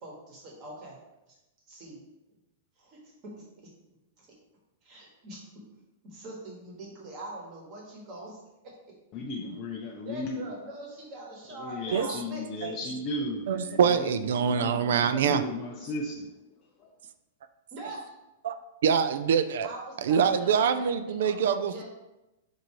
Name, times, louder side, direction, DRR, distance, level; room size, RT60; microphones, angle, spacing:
voice 1, 0.0-1.0 1.3-1.4 1.7-2.0 2.8-3.3 4.2-4.3 4.8-5.4 6.0-8.9 10.0-12.4 15.1-15.2 17.7-18.2 19.6-21.8, right 1 dB, 25° right, -2 dB, 1.2 m, -43 dB
voice 2, 9.1-10.6 11.5-16.3 16.8-16.9, left 2 dB, 25° left, -1 dB, 0.4 m, -36 dB
voice 3, 13.5-15.4 18.4-18.5 18.8-19.7 20.0-21.8, right 7 dB, 65° right, 11 dB, 0.3 m, -24 dB
4.4 x 2.6 x 4.5 m, 0.98 s
supercardioid pair, 170°, 0 cm